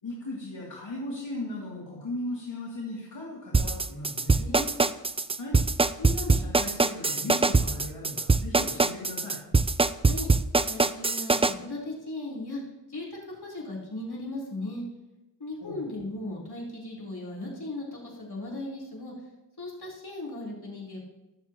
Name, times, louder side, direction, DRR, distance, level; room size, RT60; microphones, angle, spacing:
voice 1, 0.0-4.4 5.4-5.5 6.0-9.4 15.6-15.8, left 1 dB, 80° left, -7 dB, 2.9 m, -37 dB
sound 1, 3.5-11.5, right 3 dB, 15° right, 0.3 m, -23 dB
voice 2, 4.4-4.7 10.1-10.3 10.7-12.6 12.9-14.8 15.4-19.1 19.6-21.0, left 2 dB, 60° left, -5 dB, 3.8 m, -37 dB
22.0 x 7.3 x 3.0 m, 1.0 s
wide cardioid pair, 65°, 43 cm